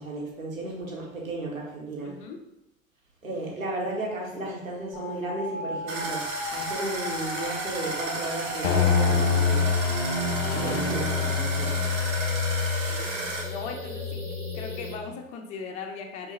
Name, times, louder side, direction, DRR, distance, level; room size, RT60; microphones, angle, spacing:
voice 1, 0.0-2.2 3.2-9.7 10.5-11.9, right 2 dB, 80° right, -3 dB, 1.2 m, -34 dB
voice 2, 2.0-2.4 11.2-11.3 12.9-14.3 14.5-16.3, left 5 dB, 20° left, 4 dB, 0.3 m, -39 dB
sound 1, 4.9-14.9, left 1 dB, 5° right, 1.4 m, -37 dB
sound 2, 5.9-13.4, right 2 dB, 30° right, 1.1 m, -34 dB
sound 3, 8.6-15.1, left 5 dB, 45° left, 0.7 m, -27 dB
5.2 x 2.4 x 3.3 m, 0.85 s
figure-of-eight pair, 80°, 40 cm